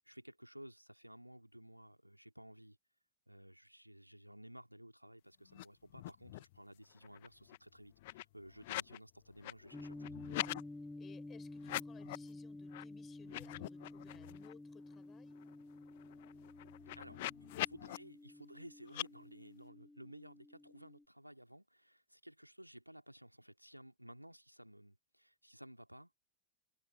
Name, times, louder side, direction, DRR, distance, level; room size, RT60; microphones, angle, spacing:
voice 1, 0.0-2.8 3.3-10.1 16.9-26.1, equal, 90° right, 2.9 m, -56 dB
sound 1, 5.5-5.7 5.9-6.6 6.9-9.0 9.3-10.6 11.6-12.3 12.7-12.8 13.2-14.5 14.9-15.0 15.3-18.0 18.9-19.1, left 18 dB, 50° left, 0.7 m, -44 dB
sound 2, 9.7-21.0, left 2 dB, 5° left, 3.7 m, -51 dB
voice 2, 11.0-15.4, left 9 dB, 25° left, 6.6 m, -62 dB
figure-of-eight pair, 90°, 0 cm